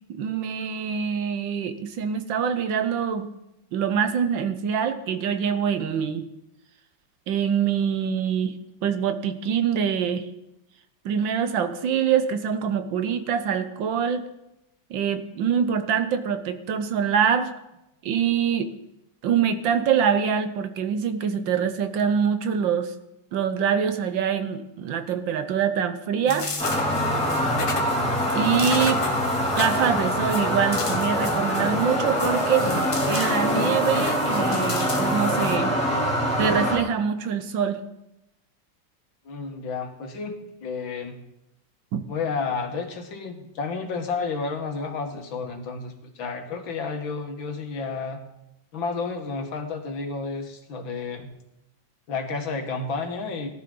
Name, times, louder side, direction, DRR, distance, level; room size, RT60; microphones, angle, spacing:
voice 1, 0.1-3.3 3.7-6.3 7.3-8.6 8.8-10.3 11.0-14.2 14.9-17.5 18.0-18.8 19.2-22.9 23.3-26.5 28.3-29.0 29.5-32.7 33.1-35.7 36.4-37.8 41.9-42.0, right 7 dB, 75° right, 10 dB, 1.6 m, -24 dB
sound 1, 26.3-35.6, left 3 dB, 40° left, 0.4 m, -33 dB
sound 2, 26.6-36.8, equal, 5° left, 2.5 m, -24 dB
voice 2, 39.3-40.4 40.6-41.2 42.1-48.2 48.7-51.3 52.1-53.5, left 4 dB, 80° left, 5 dB, 2.2 m, -31 dB
18.0 x 11.5 x 3.8 m, 0.88 s
omnidirectional pair, 2.1 m